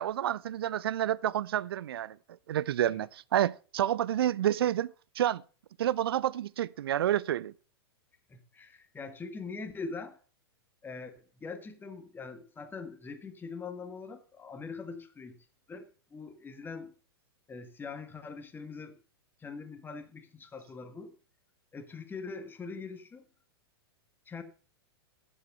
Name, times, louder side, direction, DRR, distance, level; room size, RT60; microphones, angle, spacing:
voice 1, 0.0-2.2 2.5-5.4 5.8-7.5, right 11 dB, 70° right, 0.5 m, -29 dB
voice 2, 8.3-10.2 10.8-16.9 17.5-19.0 19.4-21.1 21.7-23.3 24.2-24.4, left 4 dB, 15° left, 1.7 m, -43 dB
12.0 x 7.4 x 5.5 m
hypercardioid pair, 105°, 13 cm